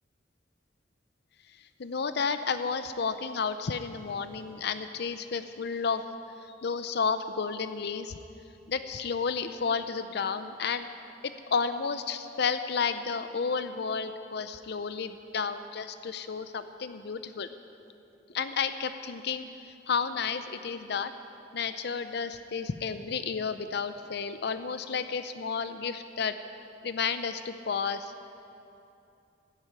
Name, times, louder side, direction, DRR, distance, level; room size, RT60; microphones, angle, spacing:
voice 1, 1.6-6.0 6.4-8.1 8.7-10.9 11.2-17.5 18.3-21.1 21.5-26.3 26.8-28.1, left 5 dB, 65° left, 10 dB, 0.5 m, -32 dB
14.0 x 9.8 x 8.9 m, 2.8 s
head